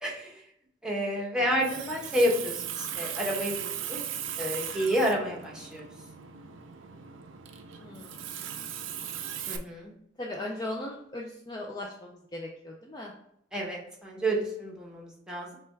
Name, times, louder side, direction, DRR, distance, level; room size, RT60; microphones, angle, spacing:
voice 1, 0.0-0.3 0.8-4.0 4.4-5.8 9.5-9.9 13.5-15.6, equal, 5° right, -2 dB, 0.9 m, -30 dB
Water tap faucet, 1.4-9.6, right 9 dB, 80° right, 0.4 m, -38 dB
voice 2, 7.8-8.2 10.2-13.1, left 1 dB, 20° left, -1 dB, 0.4 m, -38 dB
5.8 x 2.3 x 3.3 m, 0.73 s
head